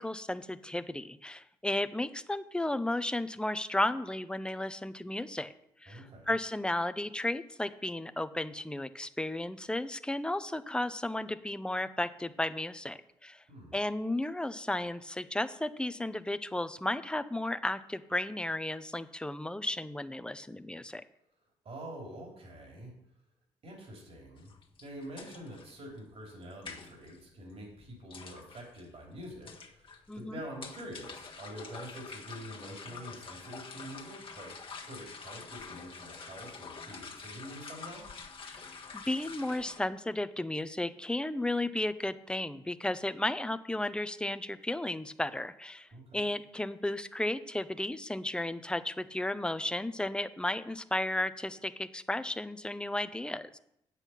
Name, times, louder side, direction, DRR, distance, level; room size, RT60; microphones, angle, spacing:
voice 1, 0.0-5.5 5.8-13.4 13.7-21.0 30.1-30.4 38.4-38.7 38.9-53.6, left 1 dB, 5° left, 12 dB, 0.7 m, -34 dB
voice 2, 5.9-6.3 13.5-13.8 21.6-22.9 23.6-24.5 24.8-34.5 34.8-38.0 45.9-46.3, right 1 dB, 55° right, 0 dB, 3.5 m, -46 dB
sound 1, 24.4-39.8, left 5 dB, 45° left, 1.5 m, -47 dB
8.2 x 8.1 x 5.8 m, 0.77 s
supercardioid pair, 55°, 12 cm